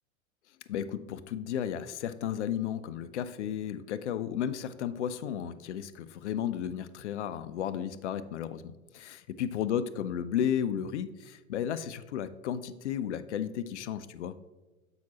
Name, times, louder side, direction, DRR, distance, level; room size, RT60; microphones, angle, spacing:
voice 1, 0.7-14.3, left 9 dB, 55° left, 13 dB, 0.5 m, -33 dB
7.7 x 5.8 x 2.9 m, 1.2 s
figure-of-eight pair, 90°, 42 cm